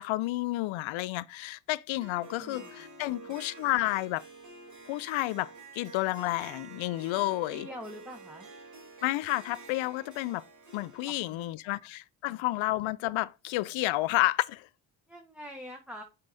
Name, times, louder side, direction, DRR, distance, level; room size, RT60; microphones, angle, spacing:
voice 1, 0.0-4.2 4.9-7.7 9.0-10.5 10.7-14.7, left 18 dB, 70° left, 0.6 m, -31 dB
Harp, 2.0-11.1, right 3 dB, 35° right, 2.2 m, -49 dB
voice 2, 2.4-2.8 7.1-8.5 11.1-11.8 12.3-12.5 15.1-16.0, equal, ahead, 1.2 m, -46 dB
6.3 x 4.6 x 4.1 m
supercardioid pair, 65°, 50 cm